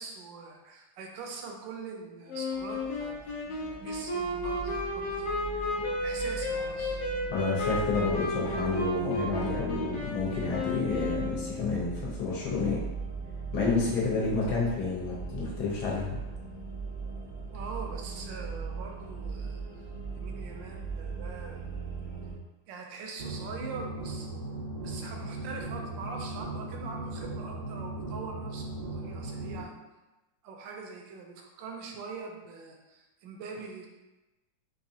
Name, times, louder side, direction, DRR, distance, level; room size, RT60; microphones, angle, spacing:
voice 1, 0.0-7.0 17.5-19.6 20.2-21.7 22.7-24.3 24.8-29.7 30.4-33.9, right 4 dB, 80° right, 1 dB, 1.3 m, -43 dB
Wind instrument woodwind instrument, 2.3-11.8, left 1 dB, 70° left, 1.3 m, -33 dB
sound 1, 2.5-22.3, right 5 dB, 45° left, 0.3 m, -40 dB
voice 2, 7.3-12.8 13.5-16.2, left 4 dB, 90° left, -4 dB, 1.6 m, -30 dB
sound 2, 23.2-29.6, right 2 dB, 60° right, 0.8 m, -38 dB
3.9 x 2.7 x 2.7 m, 1.1 s
omnidirectional pair, 2.1 m